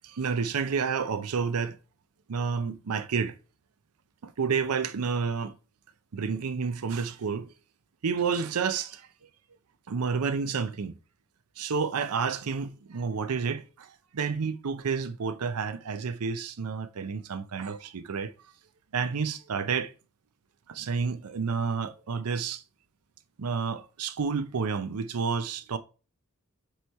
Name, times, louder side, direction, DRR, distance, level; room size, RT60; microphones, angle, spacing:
voice 1, 0.0-1.8 2.3-3.4 4.2-5.5 6.1-7.5 8.0-9.1 9.9-11.0 11.6-18.3 18.9-19.9 20.7-22.6 23.4-25.8, right 5 dB, 85° right, 0.5 m, -30 dB
7.9 x 3.1 x 4.1 m
head